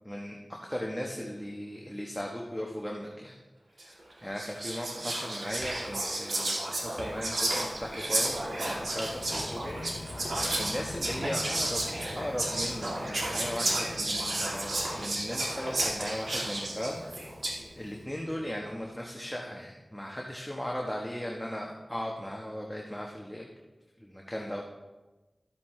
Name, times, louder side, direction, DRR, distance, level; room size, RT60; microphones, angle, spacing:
voice 1, 0.0-3.4 3.8-8.4 8.7-11.8 12.1-17.0 17.3-17.4 17.7-23.5 24.0-24.6, equal, 5° left, -1 dB, 1.2 m, -37 dB
Whispering, 3.8-4.0 4.4-17.6, right 1 dB, 90° right, 1.8 m, -32 dB
sound 1, 6.7-19.3, left 2 dB, 80° left, 0.7 m, -45 dB
12.5 x 8.3 x 3.3 m, 1.1 s
wide cardioid pair, 55°, 0 cm